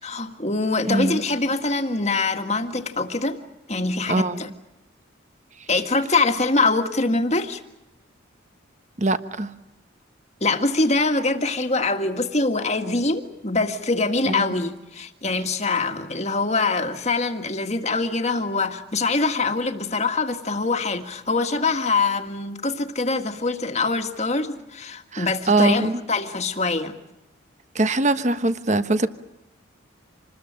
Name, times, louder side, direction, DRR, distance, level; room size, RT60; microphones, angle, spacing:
voice 1, 0.0-3.4 3.7-4.5 5.7-7.6 10.4-26.9, left 3 dB, 30° left, 6 dB, 1.8 m, -24 dB
voice 2, 0.9-1.2 4.1-4.5 9.0-9.5 14.3-14.5 25.1-26.0 27.7-29.1, right 2 dB, 35° right, 11 dB, 1.2 m, -22 dB
27.5 x 20.5 x 8.8 m, 0.94 s
head